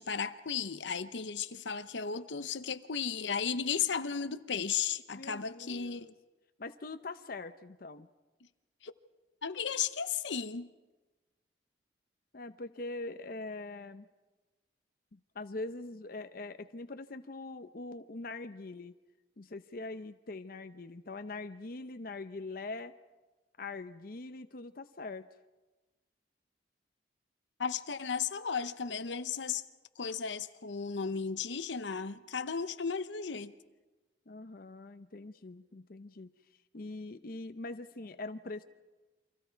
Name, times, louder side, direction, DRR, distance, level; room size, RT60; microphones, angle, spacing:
voice 1, 0.0-6.1 8.8-8.9 9.4-10.7 27.6-29.6 30.0-33.5, left 6 dB, 80° left, 0.8 m, -35 dB
voice 2, 5.1-6.1 6.6-8.1 12.3-14.1 15.1-18.9 19.4-22.9 23.6-25.3 34.3-36.3 36.7-38.6, left 3 dB, 55° left, 0.7 m, -43 dB
29.5 x 24.5 x 4.6 m
head